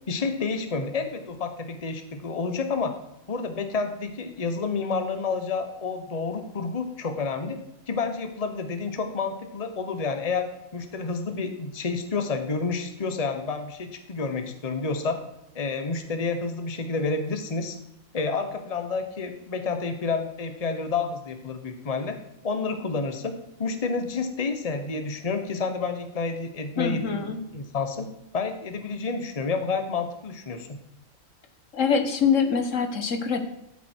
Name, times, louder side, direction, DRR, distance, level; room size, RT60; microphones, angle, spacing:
voice 1, 0.1-2.9 3.3-7.6 7.9-10.5 10.7-15.2 15.5-17.8 18.1-22.2 22.4-28.0 28.3-30.7, left 4 dB, 30° left, 7 dB, 1.1 m, -29 dB
voice 2, 26.8-27.4 31.7-33.4, left 6 dB, 65° left, 8 dB, 1.4 m, -24 dB
13.0 x 7.9 x 4.5 m, 0.86 s
omnidirectional pair, 1.4 m